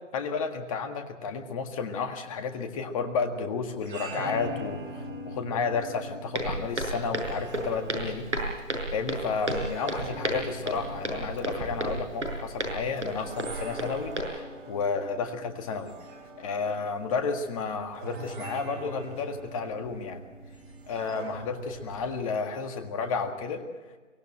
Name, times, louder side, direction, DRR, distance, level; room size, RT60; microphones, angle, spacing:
voice 1, 0.1-8.6 8.9-15.9 16.4-20.2 20.9-23.6, left 5 dB, 25° left, 6 dB, 1.8 m, -32 dB
sound 1, 3.7-22.2, right 1 dB, 40° right, 4.5 m, -43 dB
Walk footsteps, 6.3-14.2, right 2 dB, 70° right, 6.5 m, -33 dB
24.0 x 17.0 x 7.9 m, 1.4 s
figure-of-eight pair, 145°, 38 cm